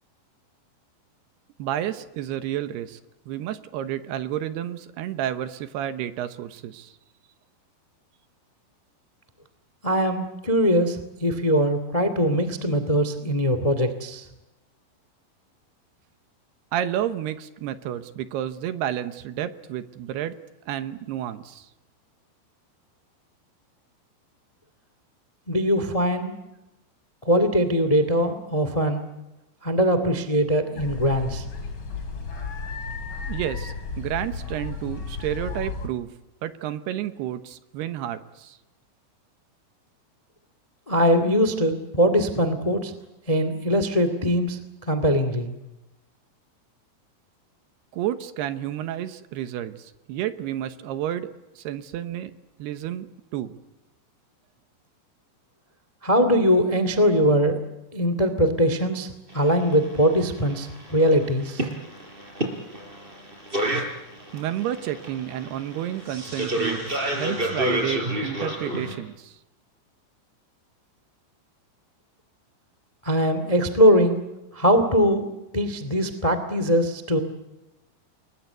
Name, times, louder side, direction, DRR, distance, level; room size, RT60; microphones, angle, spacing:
voice 1, 1.6-3.0 3.3-6.9 16.7-20.4 20.7-21.7 33.3-36.1 36.4-38.6 47.9-51.3 51.6-52.3 52.6-53.1 53.3-53.6 64.3-69.4, right 11 dB, 75° right, 11 dB, 2.9 m, -30 dB
voice 2, 9.8-14.2 25.5-26.3 27.2-29.0 29.6-31.4 40.9-42.9 43.3-44.6 44.9-45.5 56.0-57.6 57.9-61.6 73.0-74.2 74.5-75.3 75.5-77.2, equal, 75° left, 10 dB, 0.3 m, -21 dB
sound 1, 30.8-35.9, left 4 dB, 30° left, 3.2 m, -33 dB
sound 2, 59.3-69.0, right 1 dB, 10° right, 4.7 m, -29 dB
29.5 x 21.5 x 8.1 m, 0.99 s
omnidirectional pair, 5.2 m